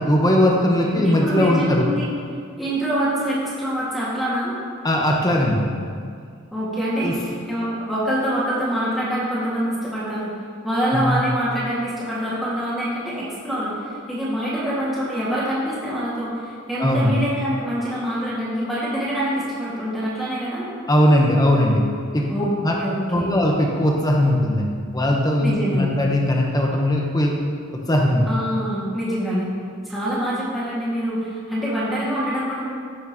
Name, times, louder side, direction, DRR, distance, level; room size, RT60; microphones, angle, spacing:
voice 1, 0.0-1.9 4.8-5.7 6.9-7.1 10.9-11.1 16.8-17.2 20.9-21.8 22.1-22.3 22.6-22.8 23.1-27.4 27.7-28.2, left 1 dB, 20° left, 0 dB, 1.1 m, -19 dB
voice 2, 0.9-2.1 2.6-4.5 6.5-10.3 10.6-20.7 22.3-22.5 22.8-23.4 25.4-25.9 28.2-29.5 29.8-32.7, equal, ahead, -10 dB, 2.0 m, -25 dB
15.5 x 6.5 x 3.0 m, 2.1 s
head